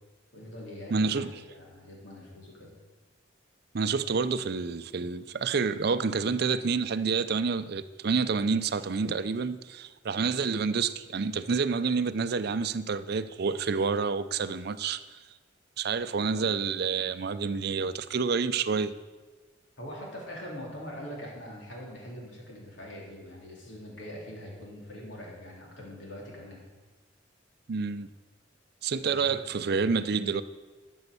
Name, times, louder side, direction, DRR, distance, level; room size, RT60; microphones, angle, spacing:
voice 1, 0.3-2.7 19.8-26.6 29.0-29.5, equal, 80° left, 3.6 m, -43 dB
voice 2, 0.9-1.4 3.7-15.0 15.8-18.9 27.7-28.1 28.8-30.4, right 5 dB, 55° right, 0.5 m, -28 dB
12.0 x 7.1 x 6.9 m
head